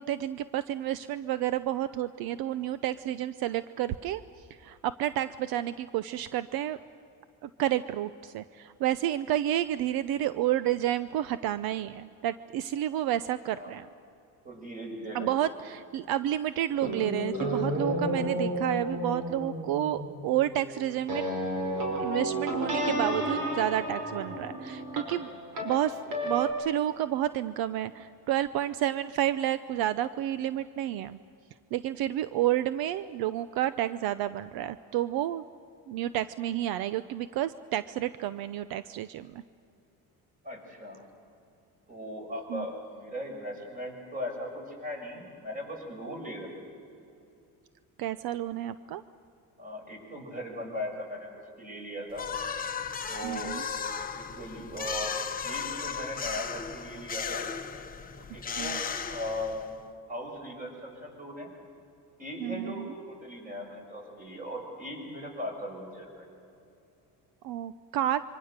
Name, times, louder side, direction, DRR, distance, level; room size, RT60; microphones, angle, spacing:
voice 1, 0.0-6.8 7.4-13.9 15.1-21.2 21.9-25.3 25.6-31.2 31.7-35.4 35.9-39.4 42.5-42.7 48.0-49.0 53.2-53.6 58.6-58.8 62.4-62.9 67.4-68.2, right 12 dB, 75° right, 14 dB, 0.7 m, -30 dB
voice 2, 14.4-15.3 40.4-41.0 41.9-46.5 49.6-52.3 53.1-53.5 54.0-57.4 58.2-58.8 59.1-59.6 60.1-61.5 62.2-66.3, left 1 dB, 20° right, 1 dB, 6.3 m, -38 dB
sound 1, 16.8-26.5, equal, 55° right, 5.2 m, -32 dB
sound 2, 52.2-59.8, left 6 dB, 25° left, 1.1 m, -35 dB
26.5 x 24.5 x 6.7 m, 2.6 s
cardioid pair, 140°, 37 cm